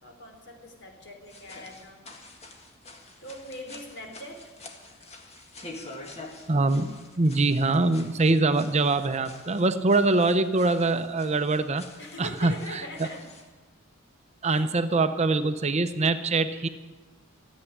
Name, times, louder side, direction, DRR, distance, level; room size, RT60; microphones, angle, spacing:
voice 1, 0.0-2.0 3.2-4.4 12.0-13.2 14.4-14.7, left 1 dB, 60° left, 3 dB, 3.1 m, -42 dB
sound 1, 1.2-13.5, left 2 dB, 30° left, 1.8 m, -47 dB
voice 2, 6.5-11.9 12.2-12.8 14.4-16.7, right 3 dB, 30° right, 10 dB, 0.6 m, -24 dB
14.5 x 8.2 x 10.0 m, 1.3 s
head